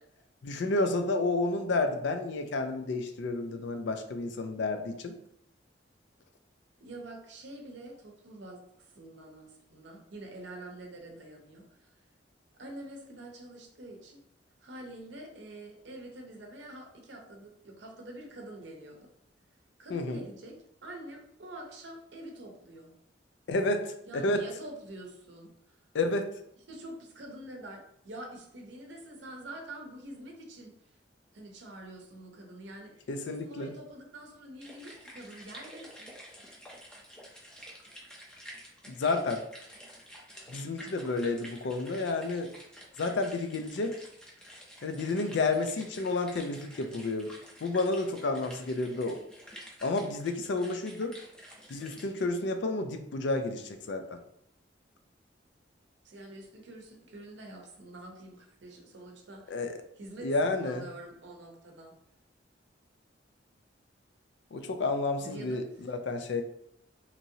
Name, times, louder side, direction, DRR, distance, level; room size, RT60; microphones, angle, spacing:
voice 1, 0.4-5.1 19.9-20.2 23.5-24.4 25.9-26.3 33.1-33.7 38.9-39.4 40.5-42.5 43.0-43.9 44.8-47.3 47.6-49.2 49.8-51.1 51.7-54.2 59.5-59.8 60.2-60.9 64.5-66.4, left 3 dB, 70° left, 7 dB, 0.4 m, -30 dB
voice 2, 6.8-11.9 12.6-14.2 14.6-19.1 19.8-20.6 20.8-22.9 24.1-25.8 26.7-30.7 31.3-36.1 37.5-37.6 56.0-59.6 60.0-61.9 65.2-65.9, right 1 dB, 75° right, 1 dB, 0.7 m, -46 dB
sound 1, 34.6-52.2, equal, 5° left, 0.5 m, -50 dB
2.9 x 2.6 x 2.7 m, 0.73 s
head